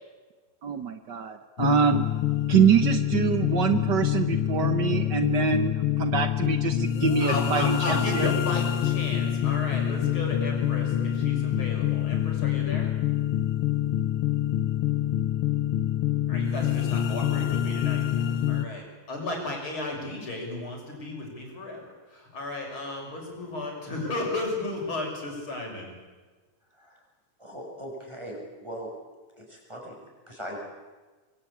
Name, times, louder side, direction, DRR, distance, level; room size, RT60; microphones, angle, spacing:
voice 1, 0.6-2.0 2.5-8.3, right 7 dB, 80° right, 9 dB, 0.9 m, -25 dB
sound 1, 1.6-18.7, left 11 dB, 70° left, 1.2 m, -26 dB
voice 2, 7.2-12.9 16.3-18.0 18.5-21.8 22.1-25.9, left 2 dB, 40° left, 1 dB, 7.4 m, -34 dB
voice 3, 26.7-27.0 27.4-28.9 29.3-30.6, equal, 10° right, 0 dB, 6.7 m, -40 dB
25.5 x 23.5 x 8.7 m, 1.3 s
omnidirectional pair, 3.6 m